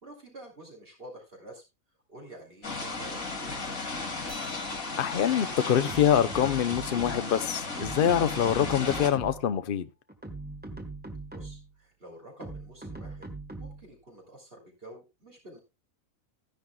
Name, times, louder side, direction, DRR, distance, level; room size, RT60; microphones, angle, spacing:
voice 1, 0.0-1.6 2.1-4.0 11.3-13.3 13.6-15.6, right 1 dB, 45° right, 3.2 m, -48 dB
sound 1, 2.6-9.1, left 3 dB, 85° left, 2.5 m, -35 dB
sound 2, 4.3-9.2, left 3 dB, 25° left, 5.6 m, -51 dB
voice 2, 5.0-9.9, left 9 dB, 50° left, 0.8 m, -25 dB
sound 3, 5.9-7.4 7.8-9.6 10.1-11.7 12.4-13.9, right 2 dB, 5° right, 1.2 m, -41 dB
14.0 x 10.5 x 2.3 m
omnidirectional pair, 1.4 m